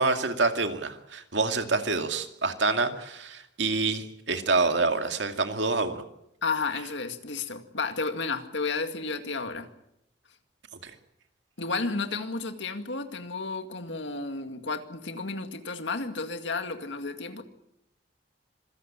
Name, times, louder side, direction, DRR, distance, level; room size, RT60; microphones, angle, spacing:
voice 1, 0.0-6.0 10.8-10.9, right 3 dB, 70° right, 2.4 m, -27 dB
voice 2, 6.4-9.7 11.6-17.4, left 4 dB, 70° left, 2.2 m, -32 dB
26.0 x 16.0 x 8.8 m
head